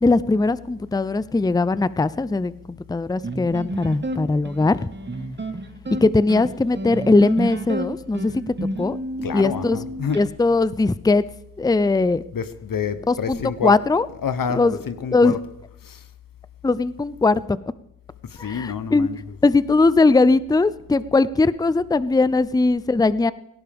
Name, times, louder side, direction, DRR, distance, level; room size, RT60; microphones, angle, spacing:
voice 1, 0.0-4.9 6.0-8.4 8.8-9.0 9.3-9.8 10.1-11.2 11.6-12.2 13.1-14.1 14.5-14.7 15.1-15.4 16.6-17.6 18.4-19.1 19.4-23.3, left 3 dB, 10° left, 0.5 m, -20 dB
sound 1, 3.2-10.2, right 1 dB, 30° right, 1.5 m, -30 dB
voice 2, 9.2-10.2 12.3-13.8 14.2-15.4 15.8-16.0 18.3-19.2, left 6 dB, 80° left, 0.9 m, -28 dB
18.0 x 16.5 x 3.5 m
cardioid pair, 40°, 33 cm